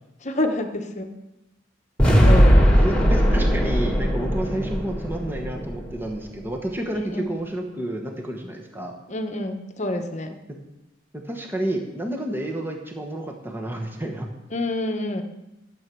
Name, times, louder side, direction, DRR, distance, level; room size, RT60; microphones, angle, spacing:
voice 1, 0.2-1.1 2.2-2.7 6.9-7.3 9.1-10.4 14.5-15.2, left 1 dB, 35° left, 6 dB, 1.1 m, -28 dB
sound 1, 2.0-6.1, equal, 5° left, 2.7 m, -18 dB
voice 2, 2.0-8.9 11.1-14.3, right 1 dB, 10° right, 1 dB, 1.3 m, -30 dB
12.5 x 7.8 x 6.2 m, 0.96 s
head